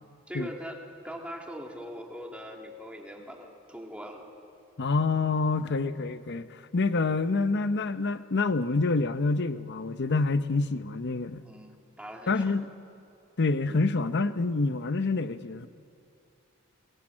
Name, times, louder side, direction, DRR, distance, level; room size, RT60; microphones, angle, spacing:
voice 1, 0.3-0.8 1.0-4.3 11.4-12.4, equal, 5° right, 2.5 m, -41 dB
voice 2, 4.8-11.4 12.3-12.7 13.4-15.7, left 3 dB, 55° left, 0.8 m, -27 dB
23.5 x 20.5 x 7.5 m
head